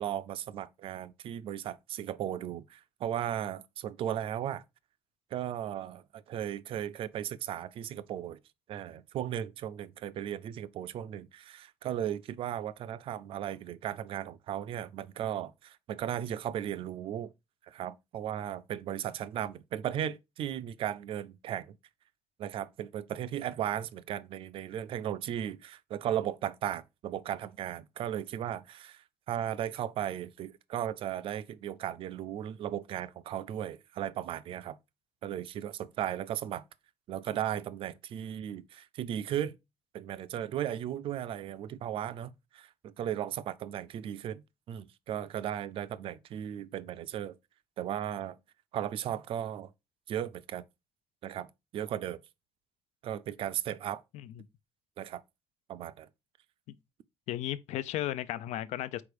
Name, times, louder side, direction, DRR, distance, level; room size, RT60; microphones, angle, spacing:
voice 1, 0.0-4.6 5.3-8.4 8.7-17.3 17.7-21.7 22.4-34.8 35.2-36.6 37.1-39.6 39.9-47.4 47.8-48.4 48.7-49.7 50.1-50.6 51.2-52.2 53.0-54.0 55.0-55.2 55.7-56.1, right 10 dB, 50° right, 0.5 m, -36 dB
voice 2, 57.3-59.0, left 13 dB, 85° left, 0.5 m, -35 dB
4.9 x 4.3 x 5.0 m
cardioid pair, 175°, 11 cm